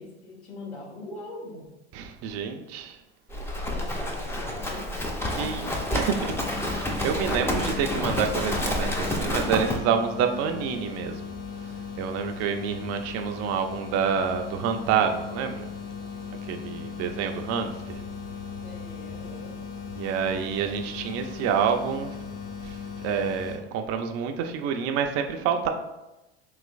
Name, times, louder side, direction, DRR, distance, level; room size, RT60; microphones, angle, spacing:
voice 1, 0.0-1.7 3.7-6.0 7.2-7.8 18.6-19.6, left 2 dB, 80° left, -4 dB, 1.5 m, -42 dB
voice 2, 1.9-3.0 5.4-6.3 6.6-11.3 12.0-15.7 16.5-18.0 20.0-22.1 22.6-22.8 23.0-25.7, right 7 dB, 50° right, 6 dB, 0.4 m, -28 dB
Livestock farm animals working animals, 3.3-9.8, left 1 dB, 10° left, 0.5 m, -29 dB
sound 1, 6.3-23.6, left 6 dB, 50° left, 1.4 m, -38 dB
4.0 x 3.0 x 2.4 m, 0.97 s
hypercardioid pair, 85°, 33 cm